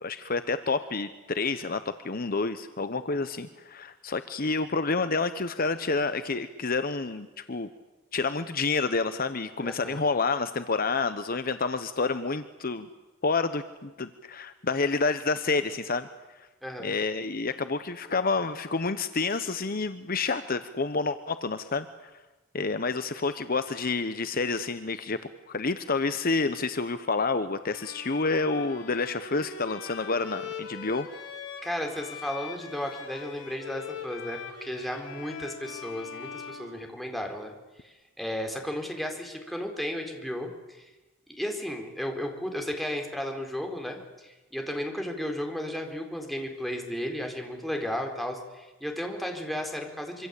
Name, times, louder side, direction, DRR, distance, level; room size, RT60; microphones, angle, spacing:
voice 1, 0.0-7.7 8.1-12.9 13.2-16.1 16.8-22.1 22.5-25.2 25.5-31.1, left 4 dB, 50° left, 11 dB, 1.0 m, -29 dB
voice 2, 9.6-10.0 16.6-16.9 31.6-37.5 37.8-40.5 40.8-40.9 41.3-50.3, equal, ahead, 2 dB, 4.3 m, -34 dB
Bowed string instrument, 27.7-37.4, left 6 dB, 75° left, 5.8 m, -42 dB
26.0 x 25.0 x 8.5 m, 1.1 s
head